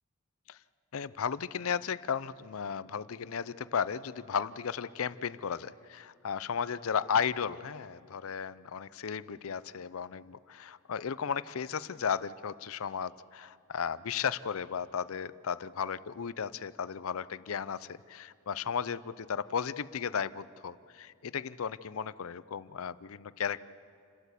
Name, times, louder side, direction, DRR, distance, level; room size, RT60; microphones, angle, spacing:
voice 1, 0.9-23.6, left 7 dB, 65° left, 17 dB, 0.5 m, -35 dB
28.5 x 12.5 x 8.2 m, 2.4 s
head